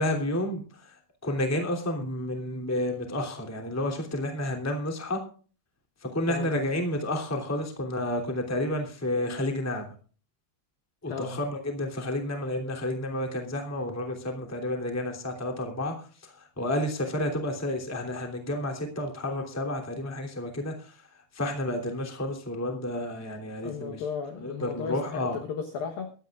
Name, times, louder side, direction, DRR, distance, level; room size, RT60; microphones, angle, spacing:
voice 1, 0.0-5.2 6.0-9.9 11.0-21.0 21.3-24.0 24.4-25.4, left 1 dB, 5° left, 3 dB, 1.8 m, -31 dB
voice 2, 11.1-11.4 23.6-26.1, left 6 dB, 70° left, 5 dB, 2.3 m, -34 dB
23.5 x 12.5 x 2.4 m, 0.40 s
omnidirectional pair, 5.5 m